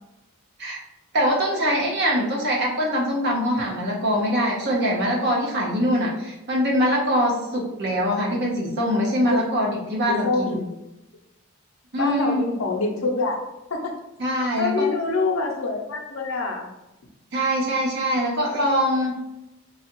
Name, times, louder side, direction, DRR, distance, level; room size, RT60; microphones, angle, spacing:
voice 1, 1.1-10.5 11.9-12.4 14.2-14.7 17.3-19.1, equal, 50° right, -3 dB, 0.9 m, -23 dB
voice 2, 10.1-10.6 12.0-13.4 13.7-13.9 14.6-16.7, left 3 dB, 60° left, 1 dB, 0.6 m, -25 dB
3.2 x 2.4 x 3.0 m, 0.93 s
head